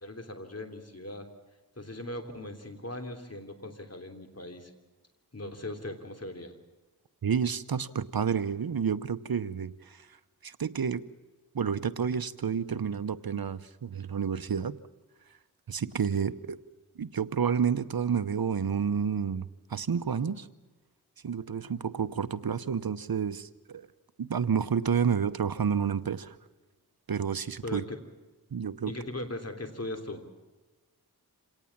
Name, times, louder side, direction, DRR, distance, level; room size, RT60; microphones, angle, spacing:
voice 1, 0.0-1.3 1.8-4.7 5.3-6.5 16.1-16.2 27.6-28.0 28.9-30.2, left 1 dB, 40° left, 6 dB, 3.3 m, -39 dB
voice 2, 7.2-10.1 10.4-11.0 11.5-14.8 15.7-16.6 17.0-20.5 21.2-23.9 24.2-26.4 27.1-27.8 28.5-28.9, right 7 dB, 65° right, 14 dB, 0.9 m, -30 dB
27.0 x 18.0 x 7.3 m, 1.2 s
wide cardioid pair, 45°, 39 cm